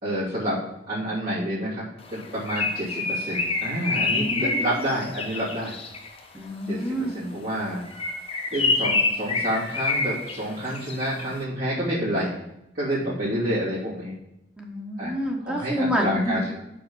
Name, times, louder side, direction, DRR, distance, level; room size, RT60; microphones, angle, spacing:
voice 1, 0.0-0.6 0.9-5.8 6.7-7.8 8.5-12.4 12.7-14.1 15.0-15.1 15.4-16.6, equal, 55° right, -11 dB, 3.0 m, -28 dB
Bird, 2.1-6.2 7.8-11.3, left 3 dB, 35° left, 1.2 m, -27 dB
voice 2, 4.1-4.5 6.3-7.2 14.6-16.3, equal, 5° right, 0 dB, 1.4 m, -28 dB
6.6 x 5.8 x 7.1 m, 0.87 s
head